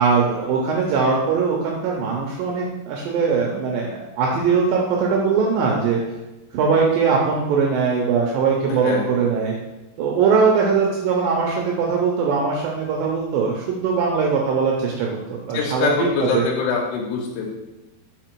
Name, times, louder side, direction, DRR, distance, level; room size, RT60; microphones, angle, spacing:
voice 1, 0.0-6.0 6.5-9.6 10.0-16.1 16.3-16.5, right 5 dB, 80° right, -1 dB, 2.0 m, -21 dB
voice 2, 8.7-9.3 15.5-17.5, left 5 dB, 85° left, -2 dB, 3.0 m, -24 dB
5.0 x 4.9 x 4.5 m, 1.0 s
omnidirectional pair, 4.9 m